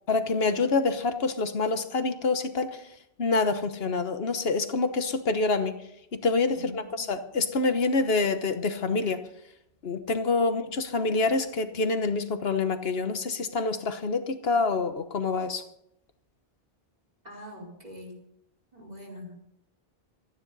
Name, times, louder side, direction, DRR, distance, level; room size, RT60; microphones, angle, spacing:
voice 1, 0.1-2.8 3.2-5.7 6.1-9.2 9.8-15.6, left 3 dB, 70° left, 9 dB, 1.4 m, -26 dB
voice 2, 6.5-7.1 10.4-10.6 17.2-18.1 18.7-19.4, left 1 dB, 40° right, 0 dB, 4.5 m, -44 dB
27.5 x 10.0 x 4.1 m, 0.77 s
omnidirectional pair, 1.0 m